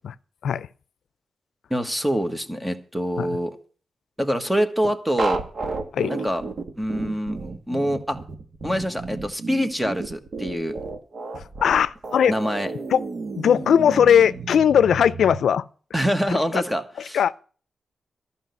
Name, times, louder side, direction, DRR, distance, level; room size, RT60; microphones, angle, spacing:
voice 1, 1.7-3.6 4.2-5.4 6.1-6.4 6.8-7.4 7.7-8.2 8.6-10.7 12.3-12.7 15.9-17.2, equal, 5° right, 1.5 m, -25 dB
sound 1, 5.2-15.4, right 3 dB, 45° right, 1.7 m, -32 dB
voice 2, 11.3-12.3 12.9-13.0 13.4-15.6 16.5-16.6 17.1-17.3, left 8 dB, 90° left, 0.5 m, -19 dB
14.0 x 5.5 x 9.5 m
wide cardioid pair, 155°, 0 cm